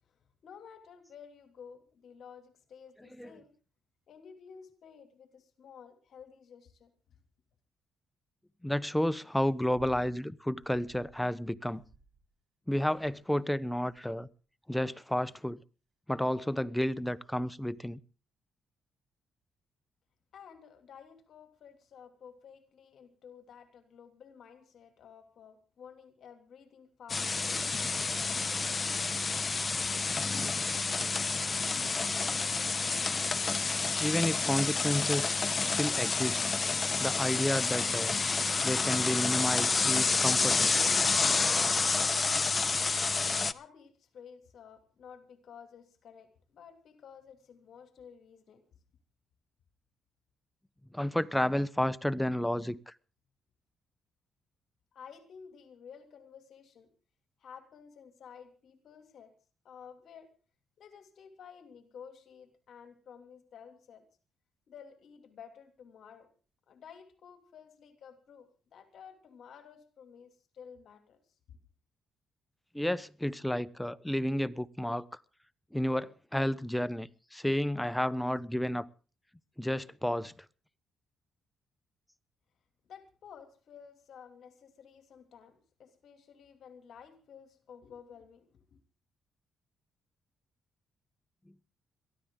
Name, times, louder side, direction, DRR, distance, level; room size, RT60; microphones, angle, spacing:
voice 1, 0.0-3.5 4.1-6.9 20.3-29.2 42.9-48.6 54.9-56.9 57.4-59.3 59.6-60.3 60.8-64.1 64.7-66.3 66.7-71.2 71.5-71.6 82.9-88.8, left 7 dB, 65° left, 2.7 m, -53 dB
voice 2, 8.6-11.8 12.7-14.3 14.7-15.6 16.1-18.0 34.0-35.3 35.6-36.4 37.0-38.2 38.6-40.7 50.9-52.9 72.7-75.2 75.7-78.9 79.6-80.4, equal, 5° left, 0.9 m, -31 dB
sound 1, 9.7-10.2 10.6-11.2 11.7-12.3 12.8-13.3 13.9-14.3 15.0-15.4 16.3-16.4, right 3 dB, 45° right, 3.3 m, -57 dB
sound 2, 27.1-43.5, left 4 dB, 30° left, 0.8 m, -29 dB
22.5 x 14.5 x 3.8 m
cardioid pair, 90°, 0 cm